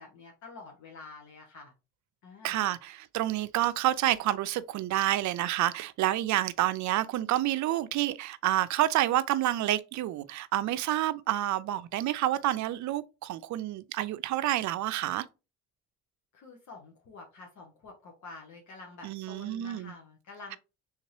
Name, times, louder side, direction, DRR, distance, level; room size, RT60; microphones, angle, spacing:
voice 1, 0.0-1.7 2.2-2.6 16.3-20.6, left 3 dB, 70° left, 1.0 m, -48 dB
voice 2, 2.4-15.3 19.0-19.9, right 14 dB, 70° right, 0.5 m, -29 dB
3.5 x 2.8 x 3.0 m
cardioid pair, 90°, 30 cm